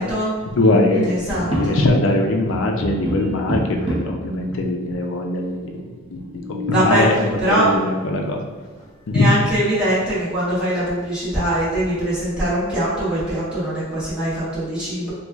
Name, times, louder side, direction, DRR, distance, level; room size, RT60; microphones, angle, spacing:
voice 1, 0.0-1.8 6.7-7.1 7.4-7.7 9.1-15.1, right 1 dB, 5° right, -12 dB, 1.2 m, -22 dB
voice 2, 0.6-3.6 3.9-5.7 6.1-8.4 9.1-9.3, left 2 dB, 60° left, 2 dB, 0.4 m, -21 dB
sound 1, 1.3-2.1 2.5-4.3 5.0-5.1 5.3-5.4 6.1-7.0 8.8-8.9 9.4-9.9 10.3-10.4 10.9-11.8, equal, 25° right, 0.6 m, -29 dB
3.1 x 2.3 x 3.4 m, 1.4 s
head